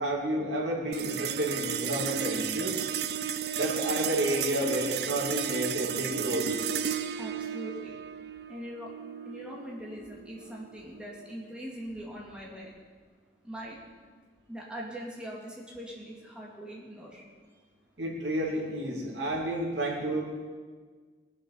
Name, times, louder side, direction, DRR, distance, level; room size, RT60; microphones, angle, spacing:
voice 1, 0.0-2.8 3.5-6.5 18.0-20.2, right 1 dB, 80° right, -1 dB, 2.8 m, -30 dB
sound 1, 0.9-11.5, right 8 dB, 60° right, 0.5 m, -34 dB
voice 2, 7.2-7.9 8.5-8.9 9.3-12.7 13.4-13.8 14.5-17.2, equal, 5° right, -4 dB, 2.3 m, -41 dB
20.5 x 7.6 x 5.6 m, 1.5 s
head